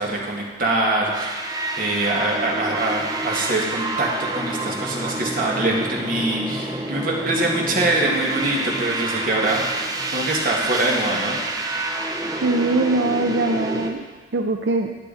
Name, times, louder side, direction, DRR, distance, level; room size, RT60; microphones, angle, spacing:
voice 1, 0.0-9.7 10.1-11.4, right 2 dB, 50° right, -2 dB, 2.1 m, -24 dB
sound 1, 1.1-13.9, right 2 dB, 20° right, 0.9 m, -28 dB
voice 2, 12.4-14.0 14.3-15.0, right 2 dB, 75° right, 4 dB, 0.6 m, -22 dB
12.5 x 9.6 x 4.2 m, 1.4 s
head